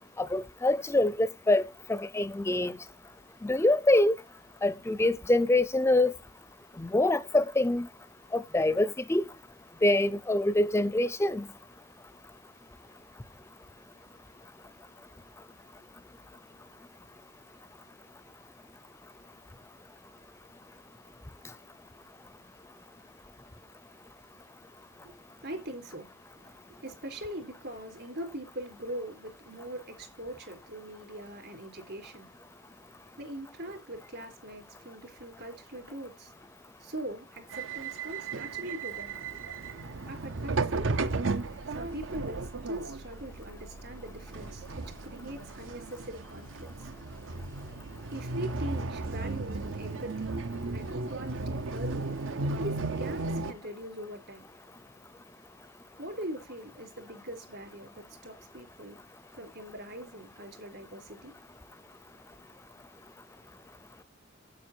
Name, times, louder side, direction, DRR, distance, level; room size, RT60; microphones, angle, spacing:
voice 1, 0.2-1.6 1.9-2.8 3.4-4.1 4.6-6.1 6.8-7.9 8.3-9.2 9.8-11.5, left 1 dB, 15° left, 0.5 m, -25 dB
voice 2, 25.0-26.1 26.7-32.3 33.2-36.3 36.8-39.2 40.1-41.3 41.7-44.6 45.0-46.7 47.7-50.4 50.7-52.2 52.5-54.5 56.0-59.0 59.3-61.3, right 1 dB, 60° right, 3.9 m, -41 dB
sound 1, 37.5-53.5, right 3 dB, 80° right, 0.7 m, -35 dB
9.3 x 8.6 x 4.5 m
head